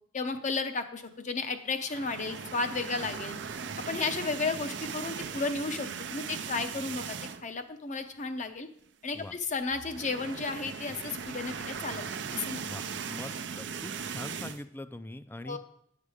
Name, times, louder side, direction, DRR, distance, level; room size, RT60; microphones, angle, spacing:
voice 1, 0.1-3.4 3.9-8.7 9.0-12.0 12.3-12.6 15.5-15.6, left 4 dB, 45° left, 8 dB, 0.8 m, -33 dB
sound 1, 1.8-7.6 8.0-8.2 8.4-8.5 9.6-14.6, right 6 dB, 75° right, 0.6 m, -38 dB
voice 2, 12.6-15.6, left 1 dB, 10° left, 11 dB, 0.4 m, -43 dB
9.9 x 6.7 x 4.9 m, 0.69 s
head